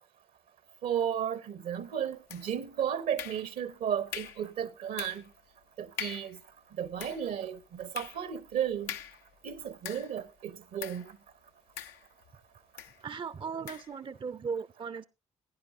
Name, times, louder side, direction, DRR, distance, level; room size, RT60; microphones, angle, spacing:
voice 1, 0.8-5.2 5.8-6.4 6.8-8.9 9.4-11.2, right 9 dB, 70° right, 1.0 m, -34 dB
sound 1, 2.3-2.7 3.2-3.7 4.1-4.5 5.0-5.3 5.6-5.7 6.0-6.4 6.8-10.3 10.8-11.1 11.8-12.3 12.8-13.0 13.7-13.9, left 10 dB, 75° left, 0.5 m, -43 dB
voice 2, 13.0-15.0, right 5 dB, 35° right, 0.5 m, -37 dB
16.5 x 10.5 x 2.5 m
hypercardioid pair, 40°, 16 cm